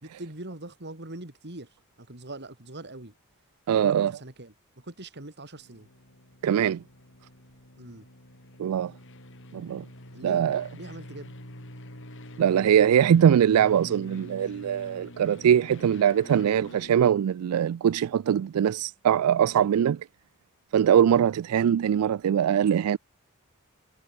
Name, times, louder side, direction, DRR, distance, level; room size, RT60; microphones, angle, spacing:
voice 1, 0.0-3.1 3.7-5.9 7.8-8.1 10.1-11.3, right 2 dB, 50° right, 3.2 m, -42 dB
voice 2, 3.7-4.1 6.4-6.8 8.6-8.9 9.5-9.8 10.2-10.6 12.4-20.0 20.7-23.0, right 9 dB, 85° right, 0.3 m, -22 dB
sound 1, 5.5-17.1, left 1 dB, 60° left, 7.0 m, -46 dB
head